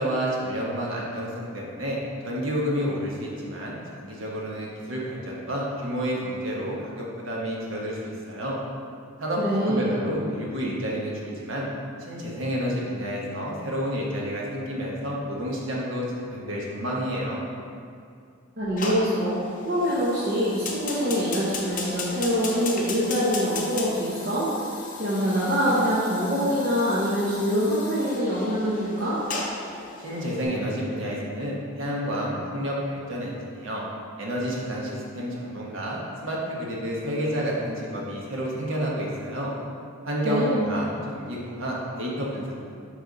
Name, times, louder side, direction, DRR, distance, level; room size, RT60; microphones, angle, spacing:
voice 1, 0.0-2.0 2.2-8.6 9.2-9.4 9.7-11.7 12.0-17.4 30.0-33.8 34.2-39.5 40.0-42.6, equal, 70° right, -4 dB, 1.2 m, -30 dB
voice 2, 9.4-9.9 18.6-24.5 25.0-29.2 40.2-40.6, equal, 45° right, -9 dB, 1.0 m, -24 dB
Fire, 18.8-30.4, left 3 dB, 40° left, 0.7 m, -36 dB
6.7 x 3.4 x 5.3 m, 2.4 s
head